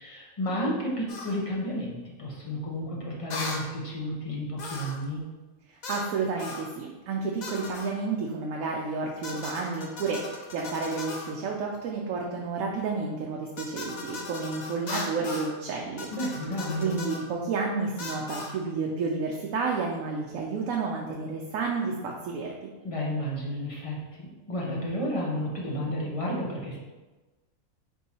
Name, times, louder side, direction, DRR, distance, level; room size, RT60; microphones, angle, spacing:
voice 1, 0.0-5.2 16.1-17.0 22.8-26.8, equal, 30° left, -4 dB, 0.7 m, -32 dB
sound 1, 1.1-1.4 3.3-3.7 4.6-5.0 5.8-6.1 6.4-6.7 7.4-7.9 9.2-11.3 13.6-15.5 16.0-17.2 18.0-18.5, left 3 dB, 75° left, 0.4 m, -38 dB
voice 2, 5.7-16.1 16.8-22.7, right 4 dB, 70° right, -1 dB, 0.9 m, -31 dB
4.5 x 2.7 x 4.1 m, 1.2 s
omnidirectional pair, 1.5 m